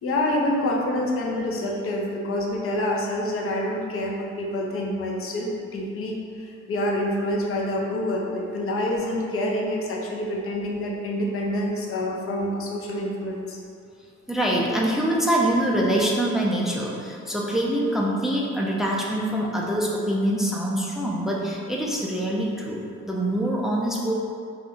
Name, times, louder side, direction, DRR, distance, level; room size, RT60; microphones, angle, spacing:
voice 1, 0.0-13.6, left 1 dB, 45° left, -1 dB, 0.5 m, -27 dB
voice 2, 14.3-24.1, right 1 dB, ahead, -3 dB, 0.3 m, -24 dB
2.5 x 2.2 x 3.5 m, 2.4 s
cardioid pair, 90°, 30 cm